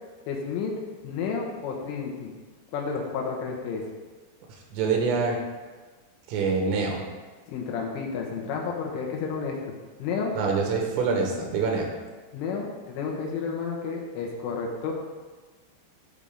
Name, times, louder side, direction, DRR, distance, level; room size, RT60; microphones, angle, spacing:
voice 1, 0.3-0.7 1.0-2.3 2.7-3.8 7.5-9.7 10.0-10.4 12.3-14.9, left 5 dB, 80° left, 0 dB, 3.6 m, -31 dB
voice 2, 4.7-5.4 6.3-7.0 10.3-11.9, right 4 dB, 90° right, 1 dB, 3.9 m, -25 dB
12.5 x 5.8 x 3.6 m, 1.3 s
omnidirectional pair, 5.8 m